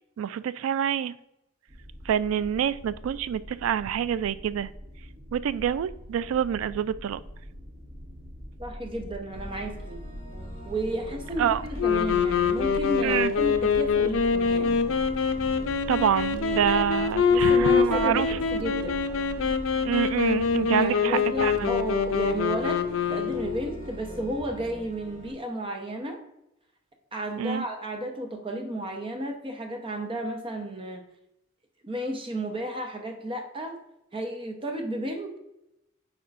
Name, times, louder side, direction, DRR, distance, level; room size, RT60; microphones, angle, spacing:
voice 1, 0.2-1.1 2.1-4.7 5.3-7.2 11.4-11.6 13.0-13.3 15.9-18.4 19.8-21.7 27.4-27.6, right 9 dB, 90° right, 17 dB, 0.3 m, -26 dB
sound 1, 1.7-19.6, equal, 50° right, 1.3 m, -43 dB
voice 2, 8.6-10.0 10.7-14.8 16.6-16.8 17.2-19.1 20.7-22.8 23.1-26.2 27.1-31.0 31.8-33.8 34.1-35.4, right 1 dB, 25° right, 3 dB, 0.8 m, -33 dB
sound 2, 9.3-25.3, equal, 40° left, 2.1 m, -43 dB
sound 3, 11.8-23.6, left 5 dB, 85° left, 0.5 m, -25 dB
8.7 x 4.6 x 2.5 m, 0.85 s
head